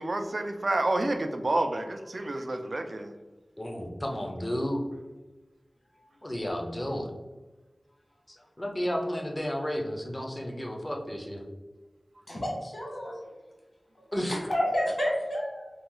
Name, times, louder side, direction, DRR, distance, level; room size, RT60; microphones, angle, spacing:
voice 1, 0.0-3.1, right 2 dB, 60° right, 6 dB, 0.4 m, -29 dB
voice 2, 2.2-2.5 3.6-4.8 6.2-7.1 8.3-11.4 14.1-14.5, equal, 20° left, 1 dB, 0.6 m, -32 dB
voice 3, 12.3-13.2 14.2-15.7, equal, 45° left, -3 dB, 1.3 m, -30 dB
2.9 x 2.3 x 3.7 m, 1.2 s
wide cardioid pair, 55°, 0 cm